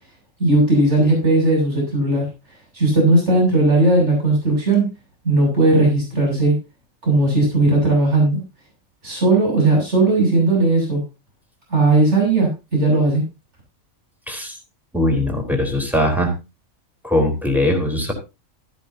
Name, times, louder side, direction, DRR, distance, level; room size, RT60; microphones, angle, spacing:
voice 1, 0.4-2.3 2.7-4.9 5.2-6.5 7.0-8.4 9.0-11.0 11.7-13.2, right 2 dB, 55° right, -1 dB, 7.7 m, -17 dB
voice 2, 14.9-16.4 17.0-18.1, left 1 dB, ahead, 2 dB, 3.8 m, -20 dB
14.0 x 13.0 x 2.8 m, 0.28 s
omnidirectional pair, 1.4 m